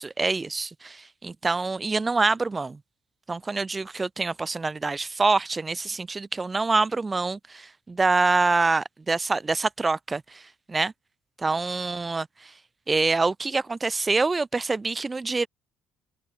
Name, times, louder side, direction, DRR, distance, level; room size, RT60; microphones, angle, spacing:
voice 1, 0.0-2.8 3.3-10.4 10.7-10.9 11.4-12.5 12.9-15.5, right 3 dB, 25° right, 3.0 m, -25 dB
hypercardioid pair, 60°, 0 cm